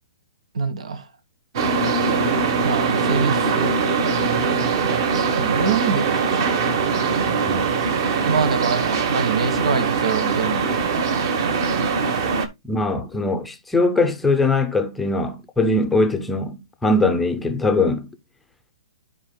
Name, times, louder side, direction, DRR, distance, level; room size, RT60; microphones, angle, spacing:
voice 1, 0.5-1.0 2.6-3.8 5.1-6.5 8.2-11.2, right 5 dB, 85° right, 1.4 m, -25 dB
sound 1, 1.5-12.5, right 5 dB, 40° right, 1.1 m, -21 dB
voice 2, 12.7-18.1, left 2 dB, 5° left, 0.6 m, -21 dB
12.5 x 4.4 x 2.2 m
hypercardioid pair, 165°, 3 cm